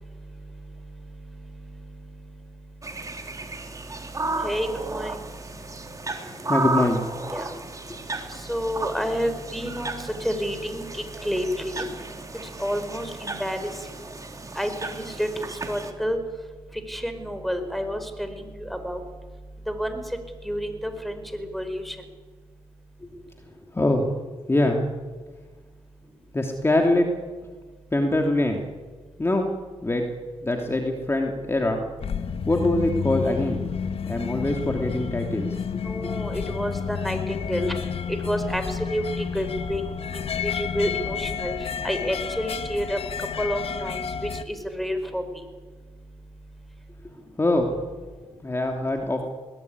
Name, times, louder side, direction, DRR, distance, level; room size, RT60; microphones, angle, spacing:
sound 1, 2.8-15.9, right 3 dB, 30° right, 3.6 m, -34 dB
voice 1, 4.4-5.1 7.3-7.5 8.5-11.8 12.6-13.6 14.5-16.2 16.9-19.0 19.7-20.0 20.4-21.9 35.8-37.7 38.2-39.9 40.1-41.5 41.8-43.0 43.4-44.0 44.5-45.4, equal, ahead, 8 dB, 4.8 m, -29 dB
voice 2, 6.4-7.0 7.4-7.6 23.0-23.1 23.7-24.1 24.5-24.8 26.3-27.1 27.9-28.6 29.2-29.5 29.8-30.0 30.4-31.8 32.5-33.6 34.1-35.5 35.9-36.1 47.4-47.7 48.4-49.2, left 1 dB, 25° left, 2 dB, 2.9 m, -23 dB
sound 2, 32.0-44.4, left 6 dB, 65° left, 1.4 m, -30 dB
21.0 x 18.5 x 9.7 m, 1.4 s
cardioid pair, 60°, 11 cm